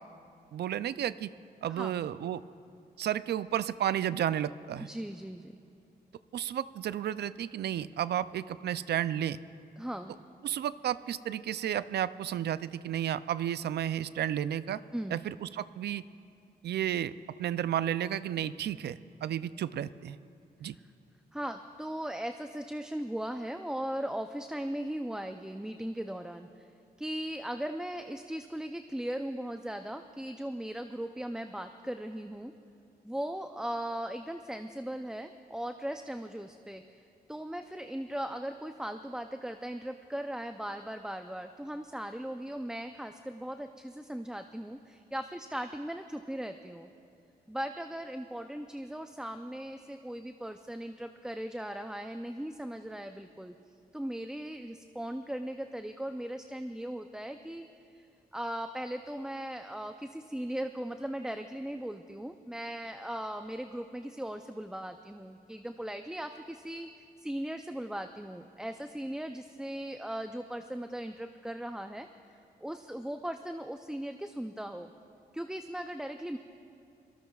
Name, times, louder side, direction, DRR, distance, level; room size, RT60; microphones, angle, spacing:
voice 1, 0.5-1.3 1.6-2.4 3.0-4.9 6.3-9.4 10.4-14.8 15.1-16.0 16.6-17.1 17.4-20.2 20.6-20.8, right 10 dB, 80° right, 15 dB, 0.4 m, -32 dB
voice 2, 4.8-5.6 9.8-10.2 14.9-15.2 20.7-20.8 21.3-26.7 27.0-32.5 33.0-46.9 47.5-53.5 53.9-66.9 67.2-72.1 72.6-74.9 75.3-76.4, right 1 dB, 5° right, 7 dB, 0.4 m, -38 dB
25.5 x 19.0 x 2.3 m, 2.5 s
cardioid pair, 80°, 17 cm